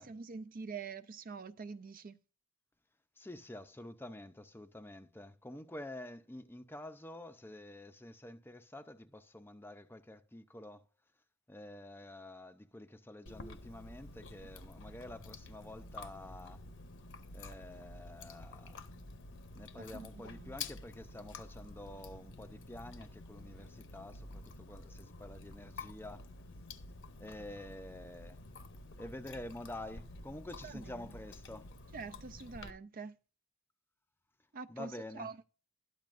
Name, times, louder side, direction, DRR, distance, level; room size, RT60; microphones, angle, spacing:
voice 1, 0.1-2.2 19.9-20.5 30.6-31.1 31.9-33.1 34.5-35.4, right 4 dB, 40° right, 0.4 m, -45 dB
voice 2, 3.2-10.9 11.5-16.6 17.3-18.8 19.5-26.3 27.2-28.4 29.0-31.7 34.7-35.3, left 1 dB, 10° left, 0.5 m, -48 dB
Chewing mastication, 13.3-32.7, left 3 dB, 55° left, 0.9 m, -50 dB
12.5 x 10.5 x 2.5 m
head